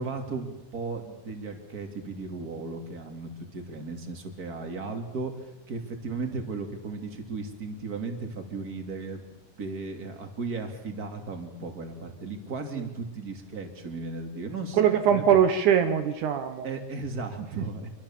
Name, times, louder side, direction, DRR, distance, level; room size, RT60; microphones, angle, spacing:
voice 1, 0.0-9.2 9.6-15.2 16.6-17.9, right 3 dB, 30° right, 5 dB, 3.1 m, -36 dB
voice 2, 14.7-16.7 17.6-17.7, right 8 dB, 75° right, 8 dB, 2.5 m, -22 dB
26.5 x 23.0 x 7.4 m, 0.95 s
omnidirectional pair, 3.7 m